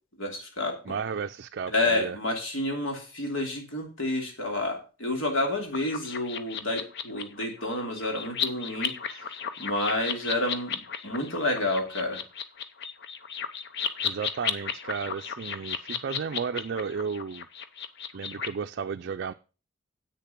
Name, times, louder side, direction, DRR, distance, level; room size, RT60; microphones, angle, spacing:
voice 1, 0.2-0.9 1.7-12.2, left 2 dB, 75° left, 1 dB, 3.1 m, -30 dB
voice 2, 0.9-2.2 9.1-9.2 14.0-17.5 18.1-19.3, right 6 dB, 55° right, 7 dB, 0.4 m, -33 dB
sound 1, 5.7-18.5, left 7 dB, 60° left, 0.8 m, -34 dB
8.2 x 6.8 x 5.9 m, 0.34 s
head